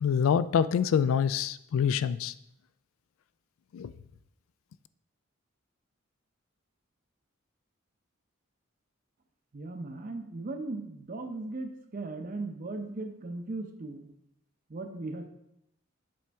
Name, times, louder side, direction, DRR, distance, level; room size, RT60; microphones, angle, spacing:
voice 1, 0.0-2.3 3.7-3.9, left 7 dB, 75° left, 15 dB, 0.3 m, -26 dB
voice 2, 9.5-14.1 14.7-15.2, right 2 dB, 45° right, 6 dB, 0.7 m, -37 dB
7.7 x 4.4 x 3.5 m, 0.78 s
head